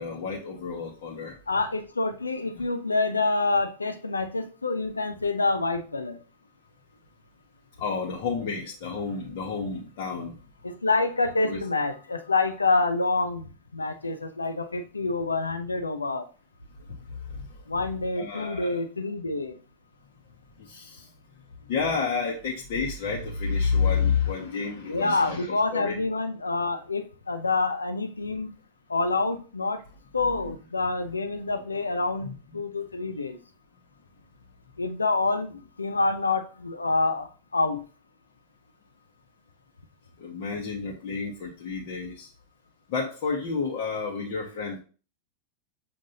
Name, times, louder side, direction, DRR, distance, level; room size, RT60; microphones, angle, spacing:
voice 1, 0.0-1.3 7.8-10.4 11.4-11.6 17.3-17.5 18.1-18.8 20.6-21.1 21.7-25.5 25.7-26.0 30.4-30.5 32.2-32.3 40.2-42.3 42.9-44.8, left 5 dB, 50° left, 0.9 m, -30 dB
voice 2, 1.5-6.2 10.6-16.3 17.7-19.6 24.9-28.5 28.9-29.8 30.1-33.4 34.8-35.5 35.8-37.9, left 3 dB, 80° left, 0.5 m, -27 dB
7.5 x 2.6 x 2.7 m
figure-of-eight pair, 90°, 0 cm